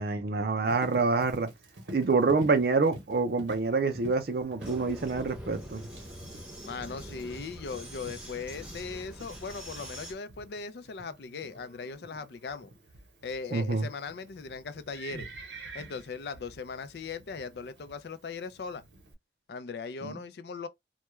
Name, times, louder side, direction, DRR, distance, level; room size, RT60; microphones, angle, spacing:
voice 1, 0.0-1.5 1.9-5.9 13.5-13.9 20.0-20.2, right 4 dB, 55° right, 0.5 m, -27 dB
Livestock farm animals working animals, 0.7-19.1, right 2 dB, 80° right, 0.8 m, -49 dB
Vehicle, 4.6-10.1, equal, 5° right, 0.7 m, -44 dB
voice 2, 6.6-12.7 13.2-15.3 15.7-18.8 19.5-20.7, left 5 dB, 65° left, 0.4 m, -39 dB
2.2 x 2.2 x 2.9 m
head